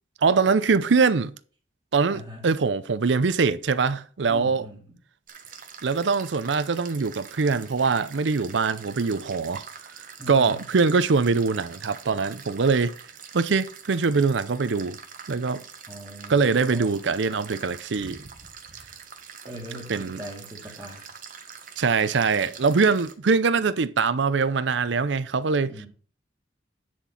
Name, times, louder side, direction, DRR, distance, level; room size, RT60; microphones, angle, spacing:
voice 1, 0.2-1.3 1.9-4.7 5.8-9.6 10.3-12.9 13.3-15.0 15.3-15.6 16.3-18.2 19.9-20.2 21.8-25.7, right 4 dB, 80° right, 0.6 m, -23 dB
voice 2, 2.1-2.5 4.3-4.8 10.2-10.6 15.9-16.9 19.4-21.1 25.7-25.9, right 1 dB, 15° right, 2.3 m, -40 dB
sound 1, 5.3-23.1, right 6 dB, 45° right, 1.2 m, -44 dB
10.0 x 4.4 x 5.7 m
head